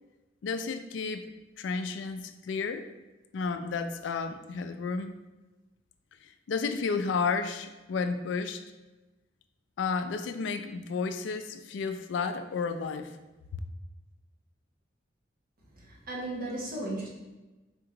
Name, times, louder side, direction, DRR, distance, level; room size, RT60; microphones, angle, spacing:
voice 1, 0.4-1.2 1.6-2.8 3.3-5.1 6.5-8.6 9.8-13.1 13.5-13.6, left 4 dB, 70° left, 9 dB, 0.3 m, -32 dB
voice 2, 15.9-17.1, right 1 dB, 50° right, -4 dB, 1.1 m, -35 dB
4.3 x 2.9 x 3.7 m, 1.1 s
head